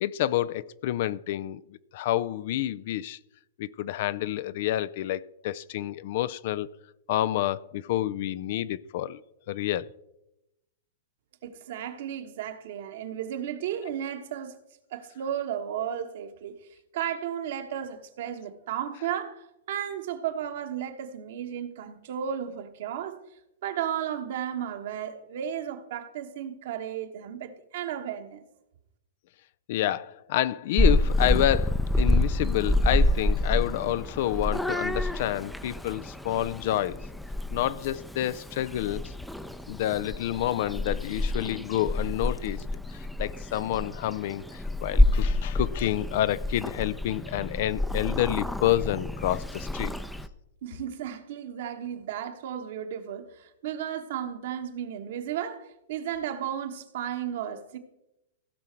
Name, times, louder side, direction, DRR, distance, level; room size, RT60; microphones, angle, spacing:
voice 1, 0.0-1.6 1.9-3.2 3.6-6.7 7.1-9.2 9.5-9.9 29.7-37.0 37.5-39.1 39.7-42.7 42.9-49.9, left 13 dB, 55° left, 0.4 m, -28 dB
voice 2, 11.4-14.6 14.9-16.7 16.9-23.2 23.6-28.4 50.6-57.8, right 9 dB, 60° right, 1.2 m, -34 dB
Purr / Meow, 30.8-50.3, left 1 dB, 5° left, 0.5 m, -28 dB
16.0 x 5.7 x 4.5 m
hypercardioid pair, 105°, 0 cm